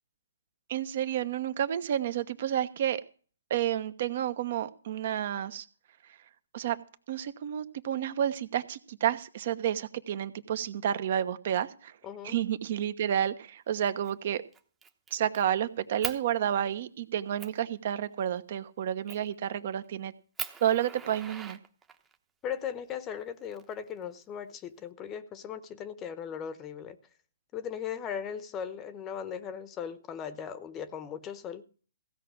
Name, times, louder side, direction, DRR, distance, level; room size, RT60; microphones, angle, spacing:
voice 1, 0.7-3.0 3.5-5.6 6.5-6.8 7.1-11.9 12.2-14.4 15.1-20.1 20.6-21.6, right 10 dB, 50° right, 1.0 m, -30 dB
voice 2, 12.0-12.4 22.4-27.0 27.5-31.6, left 8 dB, 20° left, 0.9 m, -38 dB
Fire, 13.8-14.1 14.5-15.4 16.0-16.2 16.8-16.9 17.4-17.6 19.1-19.4 19.8-19.9 20.4-22.2 23.2-24.2, right 6 dB, 15° right, 0.9 m, -40 dB
16.0 x 5.9 x 7.4 m
hypercardioid pair, 140°, 0 cm